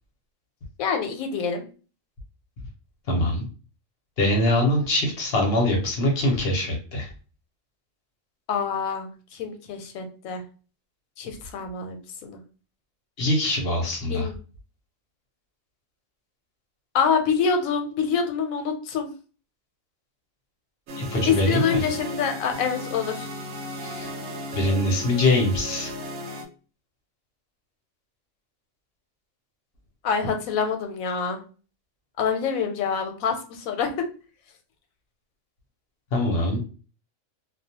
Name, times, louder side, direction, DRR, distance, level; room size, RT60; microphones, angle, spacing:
voice 1, 0.8-1.6 8.5-10.4 11.2-12.0 12.2-12.4 14.1-14.3 16.9-19.1 21.2-23.3 30.0-31.4 32.2-33.9, left 6 dB, 90° left, 5 dB, 1.0 m, -26 dB
voice 2, 3.1-3.4 4.2-7.1 13.2-14.3 21.0-21.8 23.8-24.1 24.5-25.9 36.1-36.6, left 1 dB, 55° left, 1 dB, 0.9 m, -23 dB
sound 1, 20.9-26.4, equal, 80° right, 1.0 m, -35 dB
2.3 x 2.1 x 2.7 m, 0.36 s
omnidirectional pair, 1.4 m